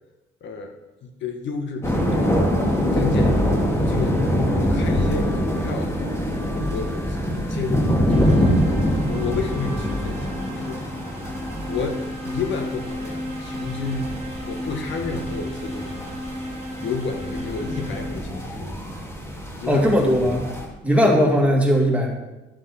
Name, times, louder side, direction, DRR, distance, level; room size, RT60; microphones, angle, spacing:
voice 1, 0.4-0.7 1.0-6.0 6.4-8.6 9.1-11.2 11.7-14.2 14.5-16.2 16.8-18.9 19.5-20.2 20.9-21.2, left 4 dB, 70° left, 4 dB, 1.4 m, -31 dB
sound 1, 1.8-20.7, equal, 15° left, 2.3 m, -24 dB
sound 2, 8.1-18.4, left 1 dB, 30° right, 2.1 m, -34 dB
voice 2, 19.7-20.5 20.8-22.1, equal, 5° right, -1 dB, 2.4 m, -18 dB
12.0 x 7.4 x 4.2 m, 1.1 s
cardioid pair, 90°, 20 cm